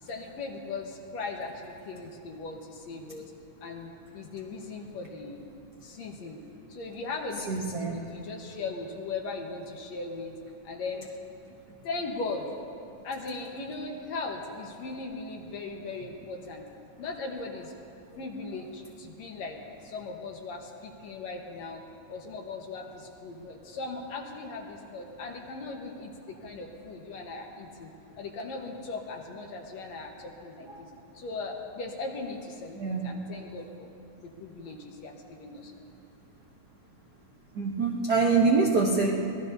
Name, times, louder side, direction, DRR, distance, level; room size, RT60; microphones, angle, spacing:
voice 1, 0.0-3.3 3.6-5.4 5.8-6.4 6.7-7.5 7.9-10.4 10.6-11.1 11.8-12.5 13.0-16.6 17.0-17.8 18.2-21.8 22.1-27.9 28.2-30.9 31.1-33.9 34.2-35.7, left 3 dB, 65° left, 1 dB, 2.4 m, -38 dB
voice 2, 7.5-8.0 30.7-30.8 32.8-33.1 37.5-39.1, right 4 dB, 65° right, -2 dB, 1.0 m, -25 dB
24.5 x 19.0 x 2.7 m, 2.6 s
omnidirectional pair, 3.5 m